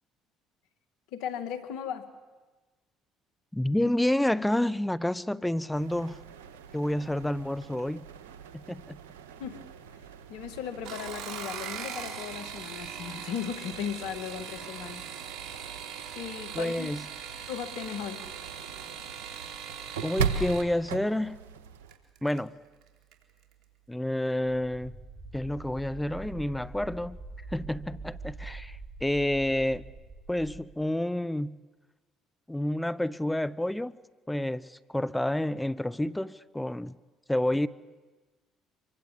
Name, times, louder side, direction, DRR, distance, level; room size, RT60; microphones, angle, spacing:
voice 1, 1.1-2.1 9.4-9.6 10.3-15.3 16.2-16.9 17.5-18.2, left 8 dB, 75° left, 10 dB, 2.2 m, -37 dB
voice 2, 3.5-6.2 6.7-8.0 8.5-9.0 16.5-17.0 20.0-21.4 22.2-22.5 23.9-24.9 25.3-27.2 27.5-29.8 30.3-31.6 32.5-34.0 34.3-36.9 37.3-37.7, left 1 dB, 5° left, 16 dB, 0.8 m, -29 dB
sound 1, 5.7-22.0, right 6 dB, 85° right, 1.5 m, -40 dB
sound 2, 10.7-20.7 21.9-22.4 22.8-23.2 23.5-23.6, right 8 dB, 65° right, 4.2 m, -41 dB
sound 3, 24.7-30.6, right 3 dB, 25° right, 7.5 m, -44 dB
25.5 x 23.5 x 8.5 m, 1.3 s
hypercardioid pair, 60°, 0 cm